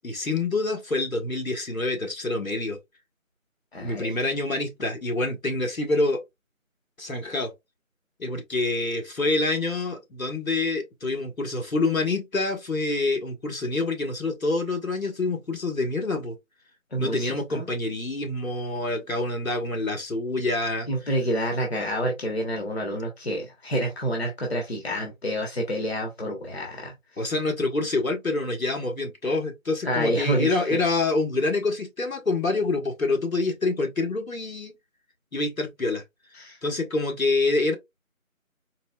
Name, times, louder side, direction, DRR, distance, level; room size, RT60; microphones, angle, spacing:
voice 1, 0.0-2.8 3.8-6.2 7.0-7.5 8.2-16.4 17.0-20.9 27.2-34.7 35.3-36.0 36.6-37.7, left 2 dB, 75° left, 1.5 m, -26 dB
voice 2, 3.7-4.1 16.9-17.7 20.9-27.2 29.8-30.8 36.3-36.6, equal, 50° left, 1.1 m, -28 dB
4.1 x 2.9 x 2.3 m
figure-of-eight pair, 170°, 41 cm